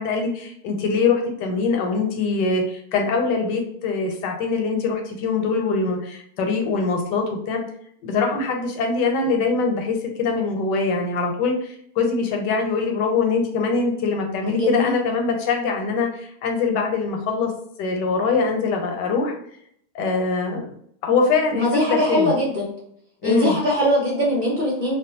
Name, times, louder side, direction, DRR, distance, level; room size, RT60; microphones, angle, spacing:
voice 1, 0.0-7.6 8.0-17.5 17.8-19.3 19.9-20.7 21.0-22.3 23.2-23.6, left 4 dB, 85° left, 2 dB, 1.2 m, -23 dB
voice 2, 14.5-15.0 21.5-22.7 23.2-25.0, left 1 dB, 35° right, -6 dB, 0.9 m, -21 dB
2.8 x 2.2 x 2.6 m, 0.68 s
omnidirectional pair, 1.8 m